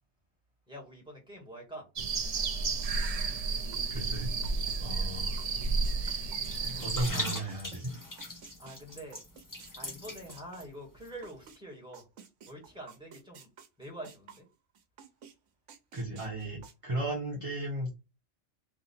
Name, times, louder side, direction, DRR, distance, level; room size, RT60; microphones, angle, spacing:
voice 1, 0.7-1.8 8.6-9.2 9.6-12.0 12.4-13.5 13.8-14.4, right 1 dB, 5° right, -1 dB, 1.6 m, -46 dB
sound 1, 2.0-7.1, right 4 dB, 60° right, 0.4 m, -32 dB
sound 2, 2.8-4.1 4.4-7.8 8.2-11.6 11.9-14.5 14.7-15.3 15.7-16.7, right 6 dB, 80° right, 1.1 m, -53 dB
voice 2, 3.9-4.3 4.8-5.4 6.0-6.3 6.8-8.0 15.9-17.9, right 2 dB, 30° right, -2 dB, 1.0 m, -35 dB
sound 3, 6.4-10.6 10.9-11.1, left 1 dB, 20° left, 0.7 m, -40 dB
3.6 x 2.8 x 4.1 m, 0.27 s
omnidirectional pair, 1.3 m